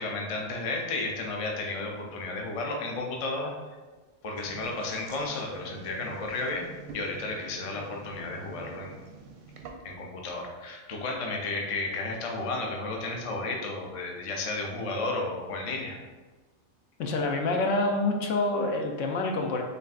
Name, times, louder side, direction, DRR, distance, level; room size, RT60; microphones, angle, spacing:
voice 1, 0.0-3.5 4.2-6.7 6.9-9.0 9.8-16.0, left 2 dB, 55° left, 0 dB, 0.4 m, -33 dB
sound 1, 4.4-10.1, right 4 dB, 85° right, 1.0 m, -47 dB
voice 2, 17.0-19.6, left 2 dB, 70° left, 3 dB, 0.9 m, -27 dB
6.4 x 2.6 x 2.4 m, 1.3 s
omnidirectional pair, 1.4 m